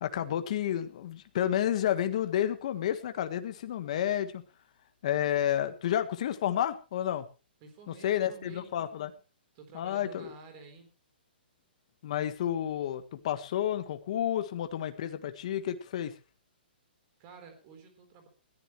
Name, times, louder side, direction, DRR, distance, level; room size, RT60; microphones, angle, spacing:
voice 1, 0.0-4.4 5.0-7.2 7.9-9.1 9.7-10.3 12.0-16.1, left 11 dB, 35° left, 9 dB, 1.5 m, -30 dB
voice 2, 7.6-8.7 9.5-10.9 17.2-18.3, right 5 dB, 25° right, 6 dB, 3.9 m, -51 dB
21.0 x 14.5 x 3.2 m, 0.32 s
hypercardioid pair, 175°, 6 cm